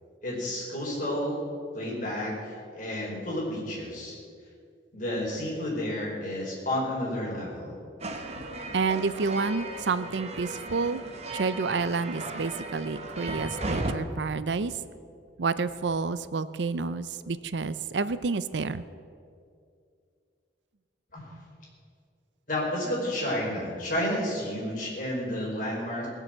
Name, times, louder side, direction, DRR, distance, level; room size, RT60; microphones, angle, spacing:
voice 1, 0.2-1.4 1.7-2.3 2.7-4.2 4.9-7.8 21.1-21.2 22.5-26.1, left 1 dB, 45° left, -4 dB, 4.8 m, -31 dB
sound 1, 8.0-13.9, right 2 dB, 35° right, 1.3 m, -36 dB
voice 2, 8.7-11.0 11.3-14.7 15.4-18.8, right 4 dB, 75° right, 14 dB, 0.6 m, -29 dB
20.0 x 7.7 x 7.7 m, 2.3 s
head